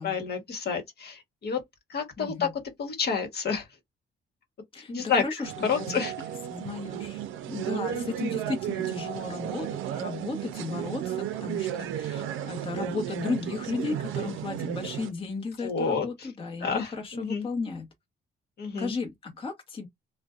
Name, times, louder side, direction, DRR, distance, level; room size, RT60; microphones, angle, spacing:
voice 1, 0.0-1.6 1.9-2.5 2.8-3.7 4.9-5.2 5.6-6.1 7.9-8.1 15.6-16.3 16.6-17.5 18.6-18.9, left 5 dB, 55° left, 1.1 m, -29 dB
voice 2, 2.2-2.5 4.7-6.0 6.5-7.2 7.5-17.9 18.8-19.9, left 4 dB, 25° left, 0.9 m, -35 dB
sound 1, 5.4-15.1, right 11 dB, 85° right, 0.5 m, -34 dB
2.5 x 2.1 x 2.3 m
cardioid pair, 90°, 20 cm